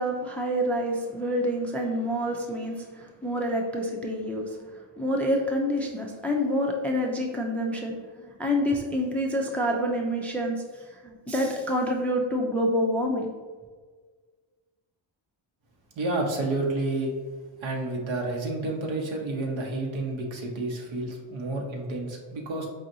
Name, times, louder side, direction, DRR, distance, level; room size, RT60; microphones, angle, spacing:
voice 1, 0.0-13.3, equal, 5° left, 1 dB, 0.4 m, -27 dB
voice 2, 16.0-17.1 17.6-22.7, right 2 dB, 70° right, 1 dB, 1.0 m, -30 dB
4.8 x 2.5 x 2.7 m, 1.5 s
cardioid pair, 75°, 49 cm